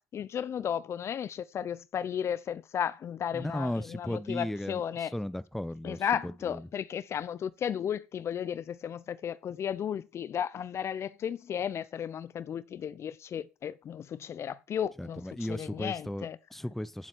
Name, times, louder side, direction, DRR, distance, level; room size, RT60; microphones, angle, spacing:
voice 1, 0.0-5.1 5.8-15.2 15.5-16.4, left 8 dB, 40° left, 0.8 m, -34 dB
voice 2, 3.3-6.6 15.0-17.1, left 1 dB, 5° left, 0.8 m, -36 dB
15.5 x 7.5 x 4.4 m
hypercardioid pair, 70°, 7 cm